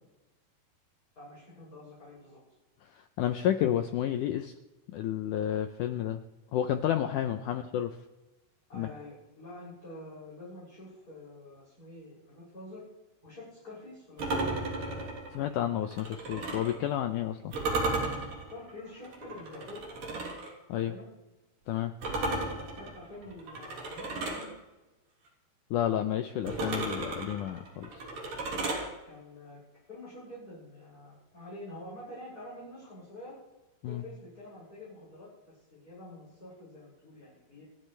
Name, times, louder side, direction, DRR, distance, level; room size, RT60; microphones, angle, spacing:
voice 1, 1.2-2.4 8.7-12.8 13.2-14.3 17.7-18.1 18.5-19.8 20.7-21.1 22.5-24.5 28.6-29.6 29.9-33.4 33.8-37.6, left 1 dB, 20° left, -9 dB, 7.5 m, -47 dB
voice 2, 2.9-4.5 4.9-6.2 6.5-7.9 8.7-8.9 15.3-17.5 20.7-20.9 21.7-21.9 25.7-27.9 33.8-34.0, left 11 dB, 85° left, 7 dB, 1.8 m, -30 dB
sound 1, 14.2-16.8 17.5-20.5 22.0-24.5 26.5-28.9, right 2 dB, 60° right, 4.8 m, -34 dB
28.5 x 12.0 x 3.4 m, 1.1 s
omnidirectional pair, 4.5 m